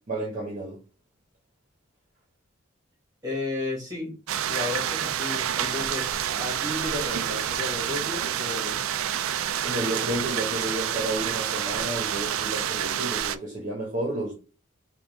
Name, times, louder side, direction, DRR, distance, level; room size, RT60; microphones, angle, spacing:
voice 1, 0.1-0.8 9.6-14.3, right 1 dB, 40° right, 1.1 m, -31 dB
voice 2, 3.2-4.1 4.4-8.8, left 3 dB, 20° right, 1.7 m, -33 dB
sound 1, 4.3-13.4, right 10 dB, 90° right, 0.4 m, -28 dB
3.6 x 2.4 x 4.6 m
head